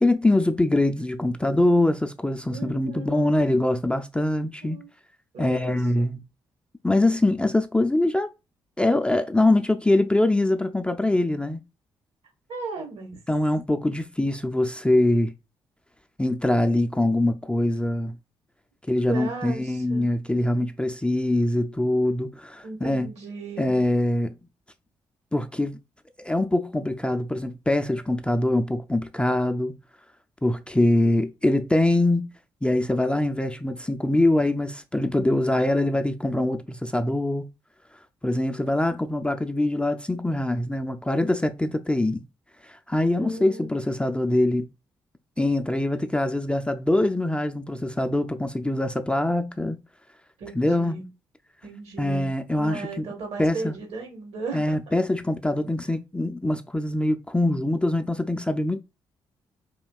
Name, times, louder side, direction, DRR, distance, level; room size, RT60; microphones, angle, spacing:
voice 1, 0.0-4.8 5.4-6.2 6.8-8.3 8.8-11.6 13.3-15.3 16.2-18.1 18.9-23.1 23.6-24.3 25.3-25.8 26.2-29.7 30.4-32.3 32.6-37.4 38.2-42.2 42.6-44.7 45.4-49.8 50.6-50.9 52.0-53.0 53.4-53.7 54.5-58.8, left 1 dB, 10° left, 0.4 m, -23 dB
voice 2, 2.5-3.4 4.6-4.9 5.3-5.8 12.5-13.2 19.1-20.1 22.6-23.8 43.2-43.7 50.4-51.1 51.6-52.3 52.5-55.0, right 4 dB, 60° right, 1.3 m, -36 dB
4.3 x 2.8 x 2.3 m
figure-of-eight pair, 40°, 12 cm